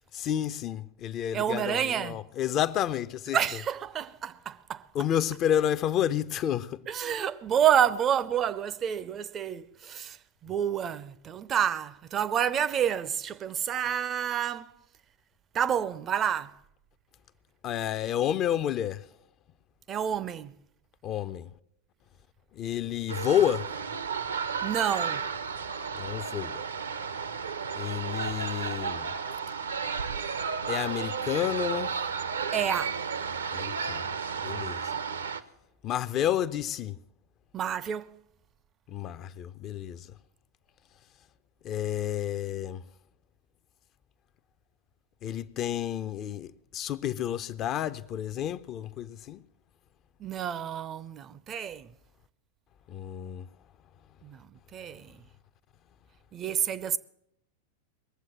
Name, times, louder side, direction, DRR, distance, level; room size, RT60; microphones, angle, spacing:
voice 1, 0.1-3.4 4.9-6.8 17.6-19.1 21.0-21.5 22.5-23.7 25.9-26.6 27.7-29.1 30.7-32.0 33.5-34.0 34.4-34.8 35.8-37.0 38.9-40.1 41.6-42.8 45.2-49.4 52.9-53.5, left 10 dB, 35° left, 0.5 m, -30 dB
voice 2, 1.3-2.2 3.3-4.9 6.9-10.2 10.4-14.7 15.5-16.5 19.9-20.5 24.6-25.2 32.5-33.0 37.5-38.2 50.2-51.9 54.2-55.2 56.3-57.0, right 9 dB, 25° right, 0.5 m, -29 dB
sound 1, 23.1-35.4, right 6 dB, 70° right, 0.7 m, -33 dB
20.5 x 7.6 x 7.5 m
figure-of-eight pair, 90°, 0 cm